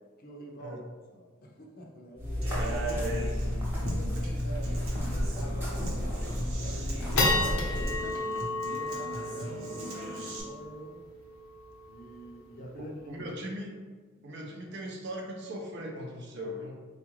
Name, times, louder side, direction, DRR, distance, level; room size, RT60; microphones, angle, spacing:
voice 1, 0.2-2.7 3.7-8.2 8.7-11.0 11.9-13.3, right 1 dB, 45° left, 0 dB, 0.5 m, -46 dB
sound 1, 2.2-8.0, equal, 10° right, 0.9 m, -31 dB
voice 2, 2.4-3.5 4.1-4.4 8.0-8.1 12.6-13.8 14.2-16.7, right 1 dB, 55° right, 1 dB, 0.5 m, -38 dB
Human voice / Acoustic guitar, 2.4-10.4, equal, 80° right, 0.8 m, -41 dB
sound 2, 4.5-4.8 5.2-5.3 5.9-6.3 6.7-13.3, left 2 dB, 85° left, 0.8 m, -33 dB
4.3 x 2.4 x 3.0 m, 1.4 s
head